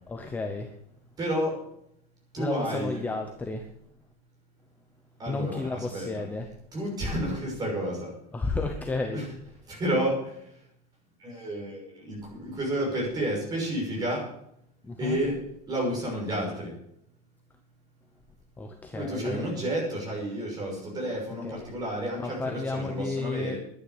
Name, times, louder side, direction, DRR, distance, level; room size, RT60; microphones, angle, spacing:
voice 1, 0.1-0.8 2.4-3.7 5.3-6.5 8.3-9.3 14.8-15.2 18.6-19.5 21.4-21.6 22.2-23.5, left 3 dB, 10° left, 4 dB, 0.8 m, -32 dB
voice 2, 1.2-1.6 2.3-3.0 5.2-6.1 6.7-8.1 9.1-9.2 9.7-10.7 11.2-14.3 15.0-15.3 15.7-16.8 18.9-23.6, right 1 dB, 20° right, -2 dB, 6.2 m, -31 dB
11.0 x 10.0 x 8.1 m, 0.75 s
cardioid pair, 180°, 19 cm